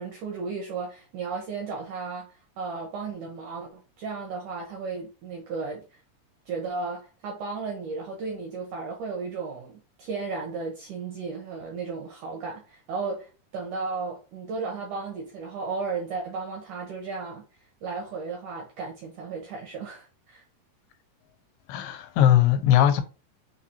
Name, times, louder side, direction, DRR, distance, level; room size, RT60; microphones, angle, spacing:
voice 1, 0.0-2.3 2.6-6.0 6.5-17.4 17.8-20.4, right 4 dB, 75° right, 1.9 m, -34 dB
voice 2, 21.7-23.0, left 11 dB, 90° left, 2.8 m, -19 dB
6.4 x 2.8 x 2.8 m
omnidirectional pair, 4.7 m